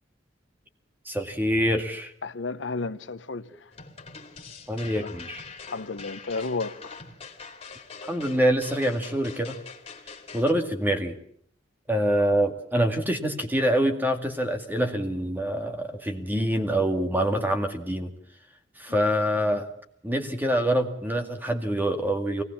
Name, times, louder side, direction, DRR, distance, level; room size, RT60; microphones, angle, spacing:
voice 1, 1.1-2.1 4.7-5.4 8.0-9.5 10.3-11.2 11.9-18.1 18.8-19.7 20.0-22.4, equal, 10° right, 2.1 m, -25 dB
voice 2, 2.2-3.7 4.9-5.1 5.7-6.9 18.9-19.0, left 3 dB, 70° left, 0.8 m, -33 dB
sound 1, 3.7-10.5, left 4 dB, 30° left, 2.9 m, -43 dB
23.0 x 18.0 x 7.2 m
head